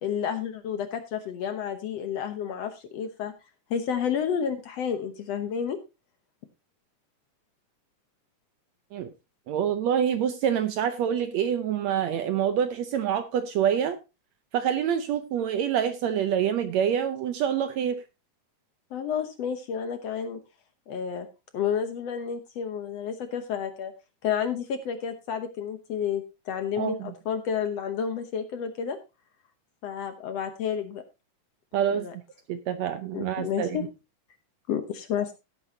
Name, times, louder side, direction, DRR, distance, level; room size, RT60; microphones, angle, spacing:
voice 1, 0.0-3.3 3.7-5.8 18.9-20.4 20.9-21.3 21.5-23.9 24.2-29.0 29.8-31.0 31.9-32.2 33.1-33.8 34.7-35.3, left 7 dB, 65° left, 1.8 m, -30 dB
voice 2, 9.5-14.0 14.5-18.0 26.8-27.1 31.7-32.1 32.5-33.8, right 9 dB, 70° right, 1.8 m, -26 dB
16.5 x 8.5 x 2.8 m
omnidirectional pair, 3.7 m